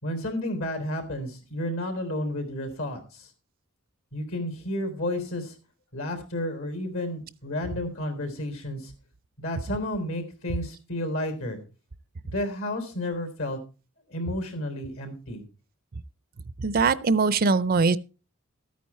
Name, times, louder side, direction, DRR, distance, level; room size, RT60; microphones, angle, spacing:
voice 1, 0.0-3.3 4.1-5.6 5.9-8.9 9.4-11.6 12.2-13.6 14.1-15.4, left 1 dB, 70° left, 3.8 m, -31 dB
voice 2, 16.6-18.0, right 4 dB, 45° right, 0.5 m, -21 dB
13.5 x 9.3 x 4.3 m
head